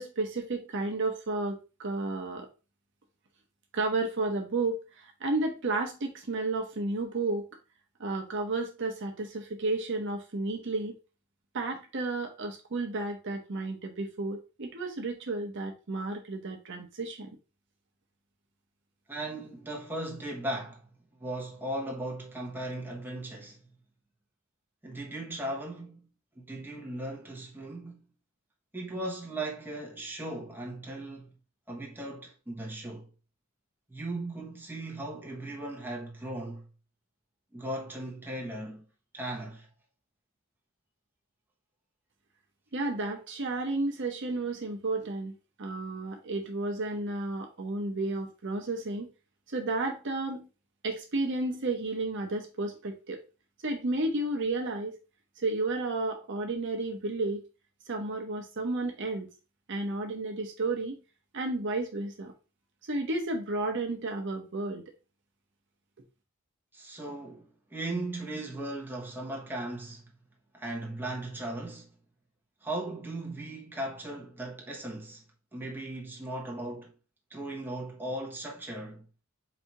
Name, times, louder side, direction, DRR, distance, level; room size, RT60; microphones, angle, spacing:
voice 1, 0.0-2.5 3.7-7.4 8.0-11.0 11.5-17.3 42.7-49.1 49.5-50.5 50.8-53.2 53.6-55.0 55.4-57.4 57.9-59.3 59.7-61.0 61.3-62.3 62.8-64.8, right 2 dB, 60° right, 0.9 m, -32 dB
voice 2, 19.1-20.9 21.2-23.6 24.8-26.1 26.3-28.0 28.7-31.3 31.7-33.1 33.9-36.7 37.5-38.8 39.1-39.7 66.7-70.1 70.5-71.9 72.6-75.2 75.5-76.9 77.3-79.1, right 1 dB, 10° right, 1.2 m, -37 dB
4.2 x 2.8 x 4.6 m
head